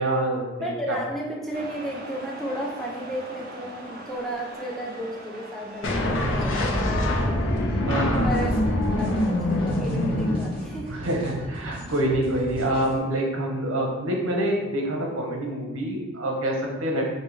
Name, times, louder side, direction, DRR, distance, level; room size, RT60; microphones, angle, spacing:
voice 1, 0.0-1.0 7.9-8.3 10.9-17.1, right 1 dB, 90° right, 0 dB, 0.9 m, -26 dB
voice 2, 0.6-7.6 8.2-8.6 9.0-11.0, equal, ahead, -3 dB, 0.4 m, -33 dB
sound 1, 1.5-6.6, right 1 dB, 45° right, 0.5 m, -41 dB
sound 2, 5.8-11.0, left 1 dB, 70° left, 0.6 m, -24 dB
sound 3, 8.0-13.0, right 1 dB, 25° right, 1.3 m, -40 dB
5.3 x 2.1 x 3.3 m, 1.2 s
head